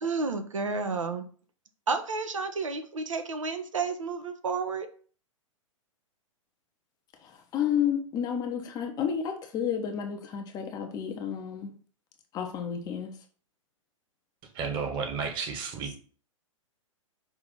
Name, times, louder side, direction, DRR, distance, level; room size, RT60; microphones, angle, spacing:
voice 1, 0.0-1.2 1.9-4.9, right 4 dB, 70° right, 0.9 m, -31 dB
voice 2, 7.2-11.7 12.3-13.1, left 8 dB, 20° left, 0.8 m, -31 dB
voice 3, 14.5-16.0, right 5 dB, 30° right, 1.3 m, -32 dB
5.9 x 3.0 x 5.4 m
figure-of-eight pair, 110°, 17 cm